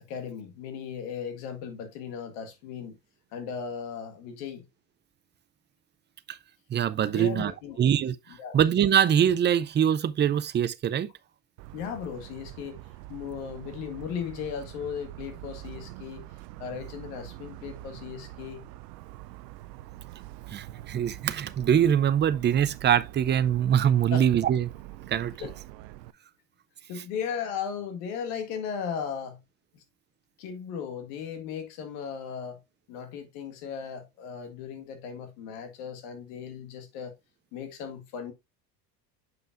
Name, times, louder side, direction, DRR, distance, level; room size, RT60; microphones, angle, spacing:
voice 1, 0.1-3.0 3.3-4.6 7.1-7.8 8.4-8.6 11.7-12.8 13.1-16.3 16.6-18.7 24.1-24.3 25.4-25.5 26.9-29.4 29.7-29.8 30.4-32.6 32.9-37.1 37.5-38.3, left 7 dB, 75° left, 1.8 m, -36 dB
voice 2, 6.7-7.5 7.8-8.2 8.5-11.1 20.5-24.7 25.1-25.3, right 9 dB, 25° right, 0.4 m, -23 dB
Motor vehicle (road) / Siren, 11.6-26.1, right 16 dB, 85° right, 0.6 m, -44 dB
7.6 x 5.5 x 2.5 m
hypercardioid pair, 80°, 48 cm